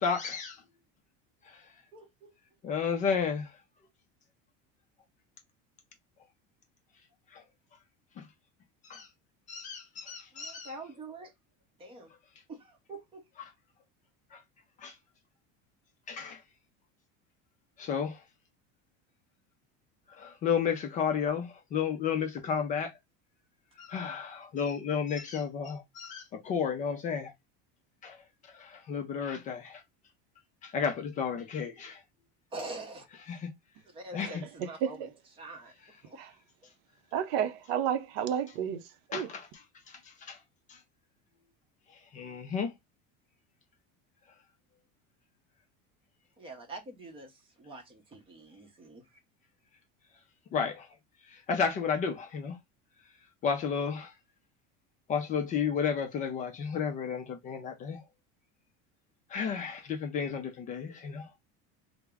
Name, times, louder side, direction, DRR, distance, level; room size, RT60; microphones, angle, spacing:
voice 1, 0.0-0.5 2.6-3.5 7.3-7.4 8.2-8.3 8.9-9.1 9.5-10.7 14.3-14.4 14.8-14.9 16.1-16.4 17.8-18.2 20.2-22.9 23.8-27.3 28.0-28.2 28.5-29.8 30.6-32.0 33.3-33.5 34.1-34.4 39.1-39.5 39.9-40.4 40.7-40.8 42.1-42.7 50.5-50.9 51.3-52.6 53.4-54.1 55.1-58.0 59.3-61.3, left 6 dB, 25° left, 0.4 m, -32 dB
voice 2, 1.9-2.3 10.3-11.3 11.8-12.1 12.5-13.2 32.5-33.1 33.9-35.7 36.0-36.2 46.4-49.2, right 2 dB, 15° right, 0.6 m, -45 dB
voice 3, 37.1-38.8 39.1-39.3, right 9 dB, 75° right, 0.6 m, -31 dB
3.4 x 2.0 x 3.3 m
cardioid pair, 175°, 32 cm